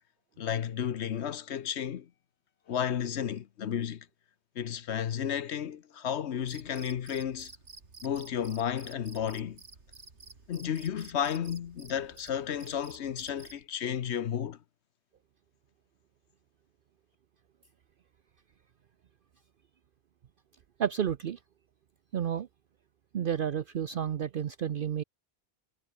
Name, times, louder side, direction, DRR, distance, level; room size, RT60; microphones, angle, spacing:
voice 1, 0.4-2.1 2.7-4.1 4.6-7.5 8.0-9.6 10.5-14.6, left 9 dB, 75° left, 1.1 m, -33 dB
Cricket, 6.5-13.6, right 4 dB, 85° right, 2.8 m, -52 dB
voice 2, 20.8-21.4 22.1-22.5 23.1-25.0, right 9 dB, 55° right, 0.8 m, -31 dB
omnidirectional pair, 1.1 m